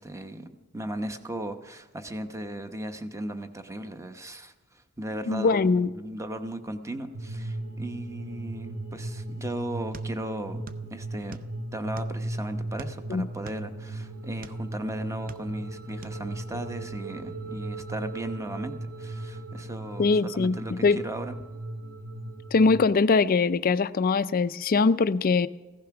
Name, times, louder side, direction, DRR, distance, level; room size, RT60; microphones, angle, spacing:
voice 1, 0.0-5.6 5.9-10.6 10.9-11.4 11.7-20.1 20.3-21.3, right 1 dB, 15° right, 0.9 m, -37 dB
voice 2, 5.3-5.9 13.1-13.3 20.0-21.0 22.5-25.5, left 4 dB, 40° left, 0.4 m, -22 dB
sound 1, 7.1-22.8, right 2 dB, 80° right, 2.8 m, -37 dB
sound 2, 9.9-10.9 11.1-12.3 12.8-14.6 15.1-15.7 16.0-16.2, right 4 dB, 40° right, 0.6 m, -45 dB
15.5 x 14.5 x 5.9 m
head